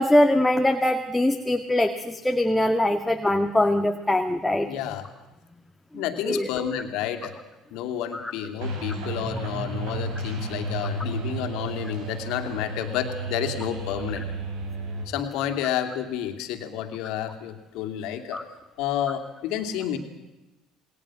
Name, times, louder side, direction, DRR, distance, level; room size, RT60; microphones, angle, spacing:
voice 1, 0.0-4.7 5.9-6.5 8.1-8.3 18.3-18.4, left 1 dB, 10° left, 5 dB, 1.9 m, -22 dB
voice 2, 4.6-5.1 5.9-7.4 7.7-14.3 15.1-18.5 18.8-20.0, left 10 dB, 65° left, 7 dB, 2.8 m, -30 dB
sound 1, 8.6-15.1, right 2 dB, 65° right, 6.5 m, -32 dB
28.5 x 21.0 x 6.3 m, 1.0 s
figure-of-eight pair, 60°, 0 cm